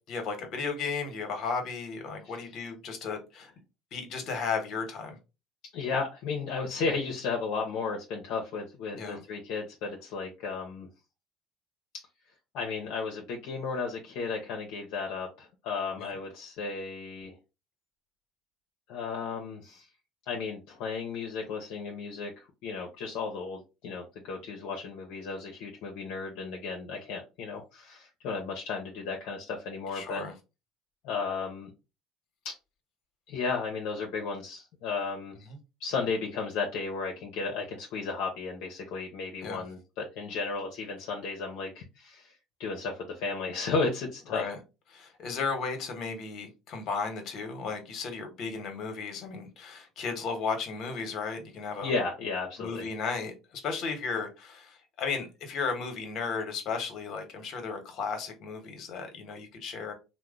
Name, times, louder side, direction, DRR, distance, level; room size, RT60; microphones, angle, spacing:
voice 1, 0.1-3.5 3.9-5.2 9.0-9.2 16.0-16.1 29.9-30.3 35.5-35.6 39.4-39.6 44.3-44.6 44.9-51.9 52.6-59.9, left 5 dB, 55° left, 5 dB, 1.1 m, -34 dB
voice 2, 5.7-10.9 12.5-17.4 18.9-19.8 20.3-30.2 31.0-31.7 32.4-32.5 33.3-35.4 35.8-44.4 51.8-52.9, left 4 dB, 70° left, 0 dB, 0.7 m, -34 dB
2.9 x 2.1 x 3.6 m, 0.27 s
supercardioid pair, 85°, 0 cm